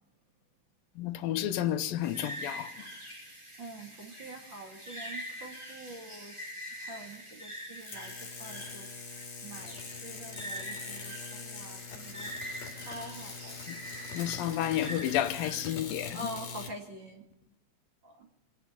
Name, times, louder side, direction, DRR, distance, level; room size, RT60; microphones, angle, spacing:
voice 1, 1.0-2.9 13.7-13.8 14.1-16.2, left 12 dB, 80° left, 2.6 m, -31 dB
sound 1, 2.0-15.8, equal, 10° right, 1.7 m, -44 dB
voice 2, 3.3-6.4 6.7-8.9 9.4-12.3 12.7-13.6 16.1-17.2 18.0-18.3, right 1 dB, 35° right, 2.5 m, -45 dB
sound 2, 7.7-16.7, left 5 dB, 55° left, 3.1 m, -43 dB
27.0 x 9.3 x 5.8 m
omnidirectional pair, 4.0 m